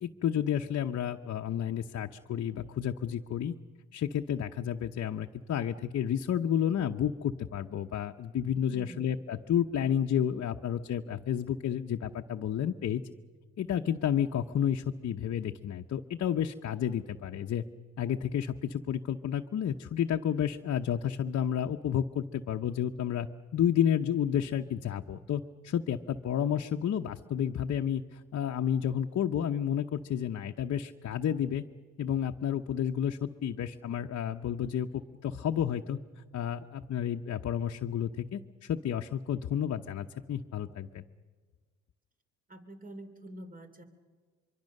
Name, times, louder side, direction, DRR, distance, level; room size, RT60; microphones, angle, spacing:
voice 1, 0.0-3.5 3.9-13.0 13.6-17.6 18.0-23.3 23.5-31.6 32.0-41.0, left 9 dB, 55° left, 3 dB, 0.9 m, -31 dB
voice 2, 8.7-9.1 23.8-23.9 42.5-43.8, right 1 dB, 25° right, 8 dB, 3.0 m, -46 dB
24.0 x 24.0 x 6.6 m, 1.5 s
cardioid pair, 85°, 31 cm